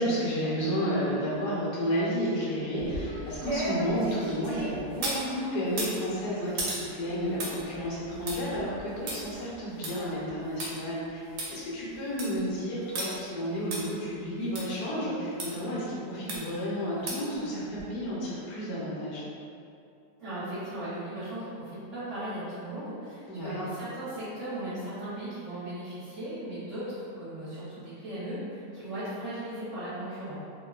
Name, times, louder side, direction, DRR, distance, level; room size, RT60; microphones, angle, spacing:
voice 1, 0.0-11.2 11.5-19.2 23.3-23.7, equal, 80° left, -7 dB, 1.2 m, -31 dB
sound 1, 2.8-5.2 5.7-10.7 11.1-11.2 11.4-11.5 11.9-12.4 13.0-13.1 13.7-13.8 14.6-14.7 15.4-15.5 16.3-16.6 17.1-17.4 17.8-17.9, right 2 dB, 80° right, 1.2 m, -35 dB
voice 2, 20.2-30.4, right 1 dB, 55° right, -15 dB, 1.1 m, -37 dB
3.0 x 2.1 x 2.3 m, 2.5 s
omnidirectional pair, 1.7 m